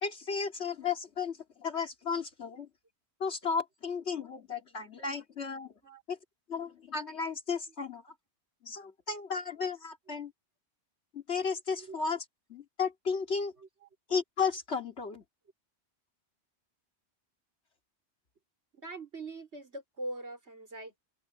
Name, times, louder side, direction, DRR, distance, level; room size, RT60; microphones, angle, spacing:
voice 1, 0.0-2.7 3.2-5.7 6.1-6.2 6.5-8.1 8.6-10.3 11.1-12.2 12.5-13.5 14.1-15.2, left 5 dB, 75° left, 2.6 m, -34 dB
voice 2, 13.6-13.9 18.7-21.0, right 2 dB, 80° right, 5.1 m, -42 dB
omnidirectional pair, 1.1 m